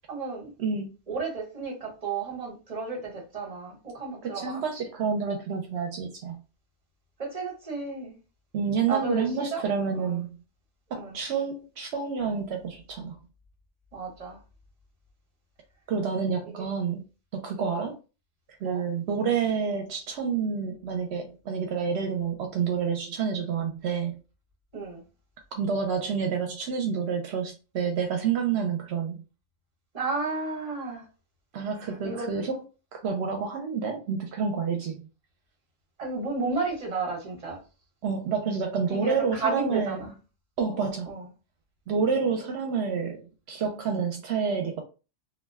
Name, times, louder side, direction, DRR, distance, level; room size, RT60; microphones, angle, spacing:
voice 1, 0.1-0.5 1.1-4.6 7.2-8.2 8.9-9.3 9.5-9.6 9.9-10.2 10.9-11.2 13.9-14.4 16.6-16.7 17.6-17.8 18.6-18.8 24.7-25.0 29.9-31.0 31.8-32.4 36.0-37.6 38.9-40.1 41.1-41.2, right 4 dB, 35° right, 1.1 m, -32 dB
voice 2, 4.2-6.3 8.5-10.3 10.9-13.2 15.9-17.0 17.3-17.9 18.6-24.2 25.5-29.2 31.5-32.6 32.9-35.0 38.0-40.0 40.6-41.2 41.9-44.8, right 6 dB, 75° right, 0.8 m, -28 dB
2.5 x 2.1 x 3.3 m
omnidirectional pair, 1.1 m